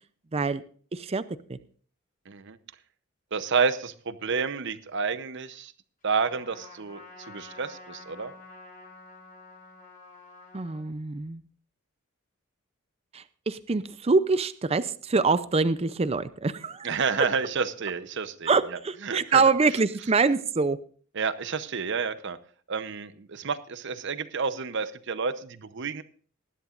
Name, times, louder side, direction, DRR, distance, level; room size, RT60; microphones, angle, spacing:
voice 1, 0.3-0.6 0.9-1.2 1.5-1.6 10.5-11.4 13.1-17.0 18.5-20.8, right 4 dB, 30° right, 14 dB, 0.5 m, -25 dB
voice 2, 2.3-2.6 3.3-5.7 6.0-8.3 16.8-18.6 19.0-19.4 21.1-22.4 22.7-26.0, right 5 dB, 60° right, 13 dB, 0.8 m, -30 dB
Trumpet, 6.2-10.9, left 3 dB, 40° left, 6.4 m, -48 dB
20.0 x 11.0 x 2.5 m, 0.44 s
head